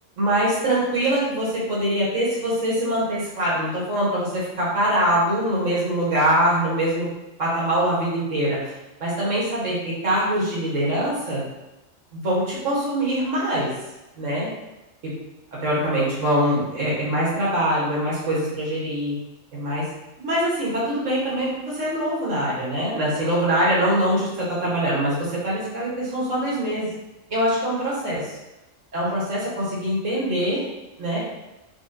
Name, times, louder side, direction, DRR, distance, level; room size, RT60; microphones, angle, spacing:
voice 1, 0.2-7.1 7.4-8.6 9.0-11.4 12.1-13.7 14.2-14.5 15.0-15.1 15.6-19.2 19.5-19.9 20.2-26.9 27.3-28.3 28.9-30.6 31.0-31.2, right 1 dB, 85° right, -7 dB, 2.0 m, -23 dB
4.2 x 4.1 x 2.9 m, 0.97 s
omnidirectional pair, 1.3 m